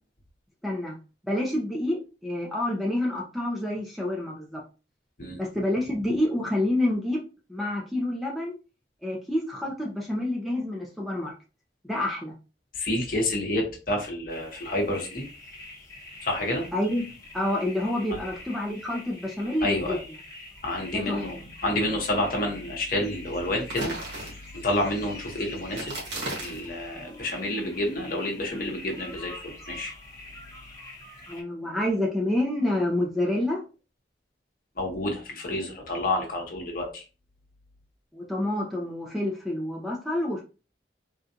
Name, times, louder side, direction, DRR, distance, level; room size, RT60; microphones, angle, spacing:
voice 1, 0.6-1.0 1.2-4.6 5.3-7.2 7.5-8.5 9.0-11.3 11.9-12.3 16.7-17.0 17.3-20.0 20.9-21.2 31.3-33.6 38.1-40.4, left 1 dB, ahead, -2 dB, 0.5 m, -28 dB
voice 2, 12.7-15.2 16.2-16.7 18.1-18.2 19.6-20.0 20.6-23.9 24.2-25.9 26.4-29.4 29.7-29.9 34.8-37.0, left 1 dB, 50° left, 1 dB, 1.0 m, -29 dB
sound 1, 14.3-31.4, left 2 dB, 20° left, 0.9 m, -45 dB
sound 2, 23.6-24.7 25.7-26.7, right 2 dB, 85° right, 1.5 m, -35 dB
3.7 x 2.3 x 2.7 m, 0.32 s
head